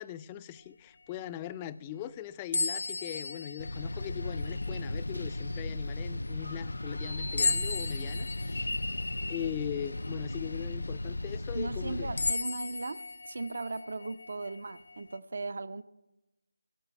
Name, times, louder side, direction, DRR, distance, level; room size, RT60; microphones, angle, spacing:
voice 1, 0.0-8.7 9.3-12.1, left 11 dB, 15° left, 14 dB, 0.4 m, -40 dB
sound 1, 2.5-4.9 5.5-5.6 7.4-10.7 11.3-11.4 12.2-15.2, left 3 dB, 55° left, 0.7 m, -35 dB
sound 2, 3.6-12.3, left 2 dB, 85° left, 0.4 m, -35 dB
voice 2, 11.5-15.8, right 3 dB, 60° right, 14 dB, 0.6 m, -37 dB
15.5 x 6.9 x 8.4 m, 0.98 s
figure-of-eight pair, 165°, 0 cm